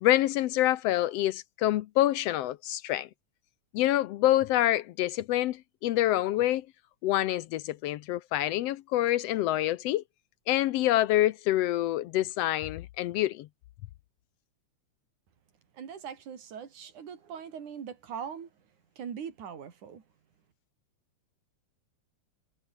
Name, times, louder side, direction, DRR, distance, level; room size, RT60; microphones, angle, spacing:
voice 1, 0.0-3.1 3.7-6.7 7.0-10.0 10.5-13.5, left 14 dB, 75° left, 1.5 m, -26 dB
voice 2, 15.7-18.5 19.0-20.0, right 7 dB, 80° right, 4.3 m, -41 dB
omnidirectional pair, 3.4 m